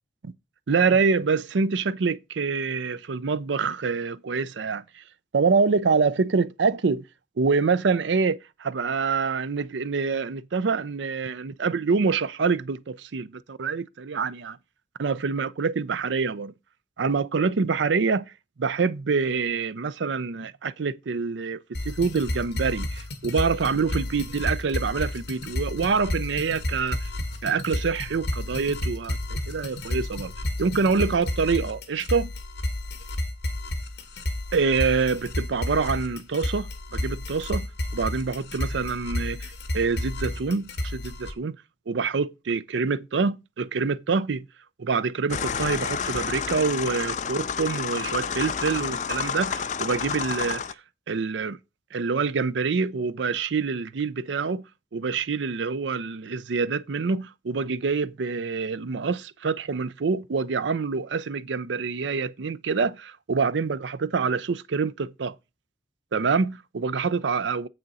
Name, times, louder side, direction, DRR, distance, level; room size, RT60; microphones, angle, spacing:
voice 1, 0.7-5.0 5.3-7.0 7.4-14.6 15.0-16.5 17.0-18.3 18.6-27.1 27.4-30.3 30.6-32.3 34.5-37.7 37.9-41.6 41.9-44.5 44.8-50.6 51.1-51.6 51.9-54.6 54.9-65.4 66.1-67.7, right 5 dB, 80° right, 0.5 m, -26 dB
sound 1, 21.7-41.3, left 1 dB, 65° left, 1.5 m, -31 dB
sound 2, 45.3-50.7, left 6 dB, 40° left, 0.4 m, -30 dB
7.6 x 6.3 x 4.1 m
head